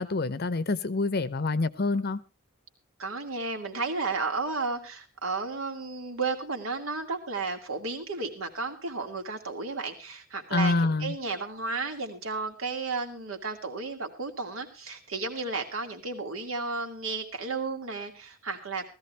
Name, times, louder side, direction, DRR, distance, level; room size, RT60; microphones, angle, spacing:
voice 1, 0.0-2.2 10.5-11.2, left 3 dB, 50° left, 16 dB, 0.7 m, -27 dB
voice 2, 3.0-18.9, right 3 dB, 90° right, 4 dB, 2.6 m, -33 dB
16.5 x 14.5 x 3.3 m, 0.31 s
head